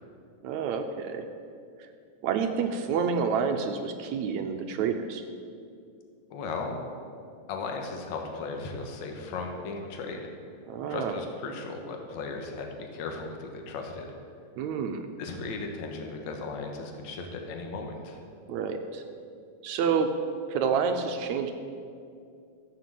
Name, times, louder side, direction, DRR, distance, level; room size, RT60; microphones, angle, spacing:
voice 1, 0.4-1.3 2.2-5.2 10.7-11.2 14.6-15.1 18.5-19.0 19.6-20.1 20.5-21.5, right 6 dB, 75° right, 6 dB, 1.9 m, -28 dB
voice 2, 6.3-6.7 7.5-10.2 10.9-14.1 15.2-18.2, left 4 dB, 65° left, 2 dB, 2.5 m, -36 dB
13.5 x 7.7 x 7.6 m, 2.4 s
omnidirectional pair, 3.6 m